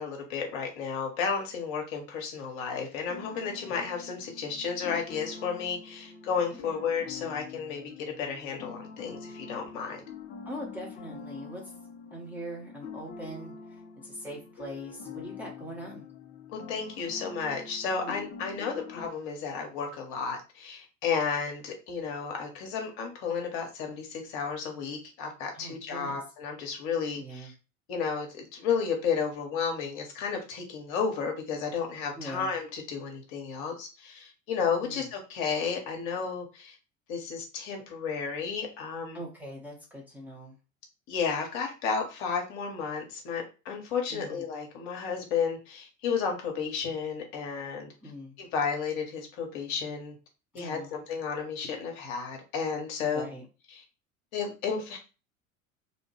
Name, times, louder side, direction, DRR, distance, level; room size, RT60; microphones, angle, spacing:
voice 1, 0.0-10.0 16.5-27.5 27.9-36.8 37.1-39.2 41.1-47.9 48.4-50.1 50.5-53.3 53.7-53.8 54.3-55.0, left 6 dB, 45° left, 3 dB, 0.8 m, -32 dB
sound 1, 3.1-19.1, left 5 dB, 25° left, 0.4 m, -45 dB
voice 2, 6.5-6.8 10.4-11.7 12.1-16.1 17.9-18.3 25.5-26.2 27.1-27.5 32.2-32.5 34.8-35.1 39.1-40.6 44.1-44.5 48.0-48.3 50.5-51.0 53.0-53.4, equal, 5° right, -4 dB, 0.7 m, -42 dB
2.7 x 2.1 x 3.1 m, 0.32 s
figure-of-eight pair, 70°, 41 cm